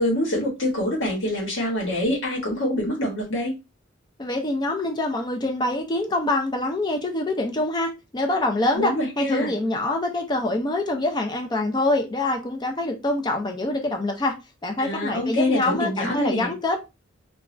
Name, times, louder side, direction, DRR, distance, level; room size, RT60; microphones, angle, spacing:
voice 1, 0.0-3.5 8.7-9.5 14.8-16.5, left 1 dB, 90° left, 1.1 m, -25 dB
voice 2, 4.2-14.3 14.6-16.8, left 2 dB, 20° left, 0.4 m, -25 dB
3.0 x 2.3 x 2.5 m
head